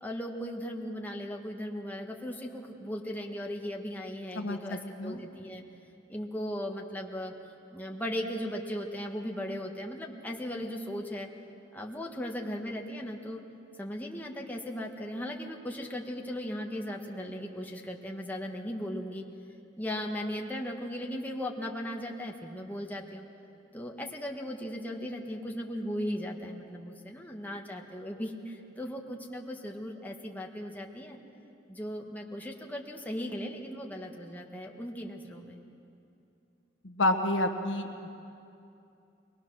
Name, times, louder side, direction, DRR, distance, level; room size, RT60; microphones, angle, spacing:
voice 1, 0.0-5.6 6.1-7.3 7.7-11.3 11.7-13.4 13.8-19.2 19.8-23.2 23.7-31.2 31.7-35.6, equal, 10° left, 0 dB, 1.4 m, -37 dB
voice 2, 4.3-5.2 36.8-37.9, left 1 dB, 90° left, 5 dB, 1.4 m, -29 dB
22.0 x 20.0 x 6.3 m, 2.7 s
head